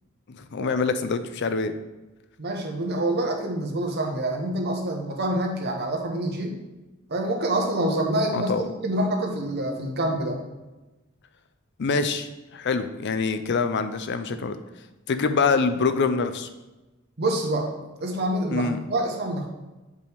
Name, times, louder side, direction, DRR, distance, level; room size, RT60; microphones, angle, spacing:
voice 1, 0.4-1.7 8.3-8.6 11.8-14.6 15.1-16.5 18.5-18.8, left 4 dB, 55° left, 10 dB, 0.5 m, -25 dB
voice 2, 2.4-6.6 7.1-10.4 17.2-17.7 18.0-19.5, right 1 dB, 50° right, 2 dB, 1.2 m, -26 dB
8.0 x 5.2 x 3.5 m, 1.1 s
head